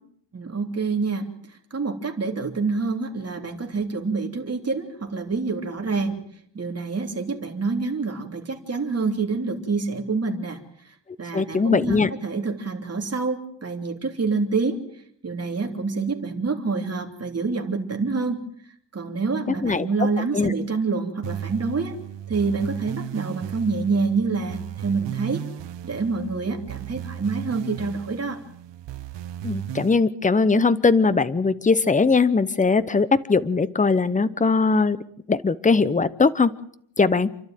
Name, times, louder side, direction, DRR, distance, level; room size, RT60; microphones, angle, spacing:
voice 1, 0.3-1.3 1.7-6.2 6.5-10.6 10.8-14.8 15.2-18.4 18.9-22.0 22.3-25.4 25.8-28.4, right 4 dB, 35° right, 4 dB, 3.3 m, -27 dB
voice 2, 11.3-12.1 19.6-19.9 20.3-20.5 29.4-35.0 35.3-36.5 37.0-37.3, left 4 dB, 20° left, 16 dB, 0.9 m, -20 dB
sound 1, 21.2-30.0, right 11 dB, 90° right, 0.9 m, -35 dB
29.0 x 12.0 x 9.3 m, 0.68 s
wide cardioid pair, 125°, 42 cm